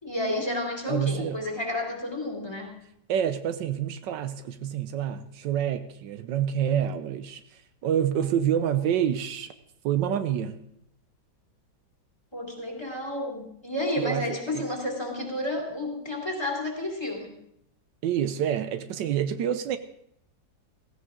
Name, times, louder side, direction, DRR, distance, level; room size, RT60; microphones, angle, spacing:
voice 1, 0.0-2.8 12.3-17.4, left 1 dB, 15° left, 0 dB, 2.7 m, -31 dB
voice 2, 0.9-1.4 3.1-9.5 9.8-10.6 14.0-14.7 18.0-19.8, right 9 dB, 80° right, 11 dB, 1.3 m, -27 dB
16.0 x 15.5 x 3.7 m, 0.75 s
omnidirectional pair, 2.0 m